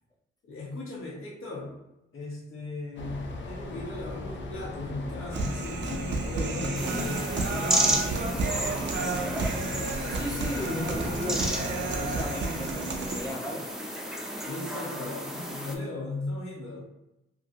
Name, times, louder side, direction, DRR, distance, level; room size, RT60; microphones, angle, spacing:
voice 1, 0.4-1.7 2.1-8.5 8.8-9.4 14.4-16.8, left 2 dB, 80° left, -5 dB, 1.1 m, -37 dB
sound 1, 3.0-13.1, left 2 dB, 60° left, 0.6 m, -38 dB
Human voice, 5.3-13.3, right 3 dB, 60° right, 0.5 m, -32 dB
sound 2, 6.7-15.8, right 1 dB, ahead, 0.6 m, -33 dB
voice 2, 10.1-11.5 11.9-13.7, left 1 dB, 15° left, -1 dB, 1.0 m, -35 dB
2.8 x 2.6 x 2.7 m, 0.92 s
cardioid pair, 65°, 21 cm